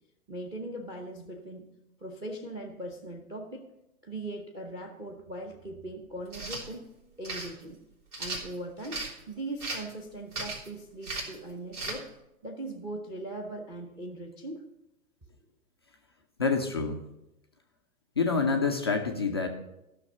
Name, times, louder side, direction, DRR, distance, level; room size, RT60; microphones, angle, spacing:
voice 1, 0.3-1.7 2.0-3.6 4.0-6.8 7.2-7.8 8.2-12.1 12.4-14.7, right 1 dB, 10° right, 4 dB, 0.7 m, -40 dB
sound 1, 6.3-6.6 7.2-7.5 8.1-9.1 9.6-9.9 10.3-10.7 11.0-11.4 11.7-12.0, right 2 dB, 80° right, 3.2 m, -36 dB
voice 2, 16.4-17.1 18.2-19.5, left 4 dB, 20° left, 2 dB, 0.3 m, -27 dB
13.5 x 6.3 x 5.5 m, 0.91 s
figure-of-eight pair, 115°, 45 cm